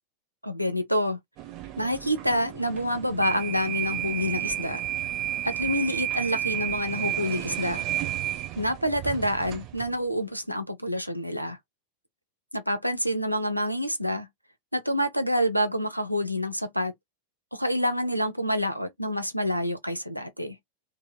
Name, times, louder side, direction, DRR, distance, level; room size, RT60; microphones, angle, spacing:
voice 1, 0.4-1.2 1.8-4.8 5.4-7.9 8.6-11.6 12.5-14.3 14.7-16.9 17.5-20.6, equal, 90° right, 0.6 m, -27 dB
sound 1, 1.4-10.0, right 13 dB, 40° right, 0.7 m, -32 dB
2.9 x 2.8 x 2.3 m
figure-of-eight pair, 90°, 0 cm